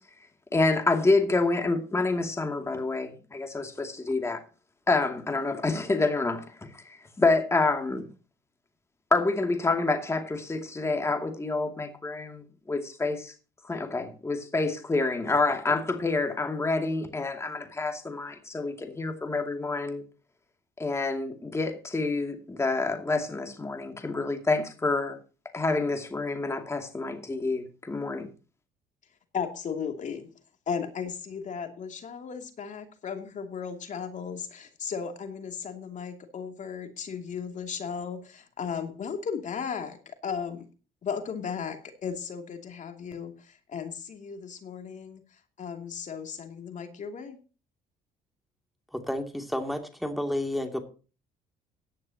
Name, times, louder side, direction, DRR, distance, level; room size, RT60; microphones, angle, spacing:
voice 1, 0.5-4.4 4.9-8.1 9.1-13.3 13.6-20.0 20.8-25.2 25.5-28.3, left 3 dB, 15° left, 4 dB, 2.5 m, -28 dB
voice 2, 29.3-30.3 30.7-40.7 41.0-45.2 45.6-47.4, left 6 dB, 45° left, 5 dB, 2.6 m, -35 dB
voice 3, 48.9-50.8, left 1 dB, ahead, 4 dB, 2.7 m, -31 dB
17.0 x 11.0 x 2.9 m, 0.35 s
cardioid pair, 110°, 17 cm